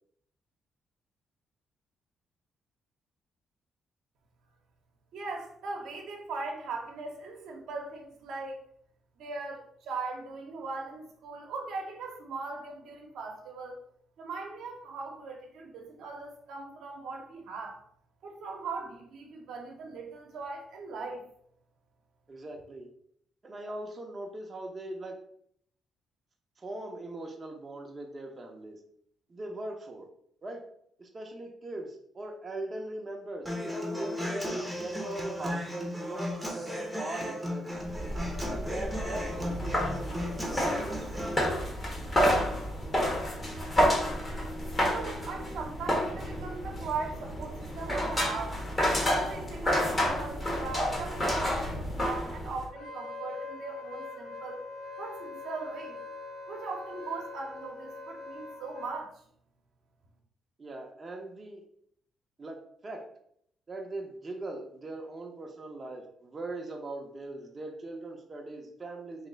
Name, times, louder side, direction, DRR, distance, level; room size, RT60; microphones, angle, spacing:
voice 1, 5.1-8.6 9.2-13.8 14.2-17.8 18.2-21.2 44.9-48.6 49.1-54.6 55.0-56.0 56.5-59.2, right 4 dB, 75° right, 1 dB, 0.8 m, -39 dB
voice 2, 22.3-22.9 23.4-25.2 26.6-28.8 29.3-30.1 30.4-30.6 31.0-38.0 38.5-41.5 60.6-61.6 62.4-62.6 62.8-63.0 63.7-69.3, right 2 dB, 35° right, 1 dB, 0.7 m, -40 dB
Human voice / Acoustic guitar, 33.5-41.4, left 1 dB, ahead, 0.9 m, -35 dB
sound 1, 37.8-52.7, equal, 25° left, 1.3 m, -30 dB
Wind instrument woodwind instrument, 52.8-58.9, left 3 dB, 75° left, 0.9 m, -42 dB
3.2 x 2.9 x 3.9 m, 0.67 s
cardioid pair, 90°, 0 cm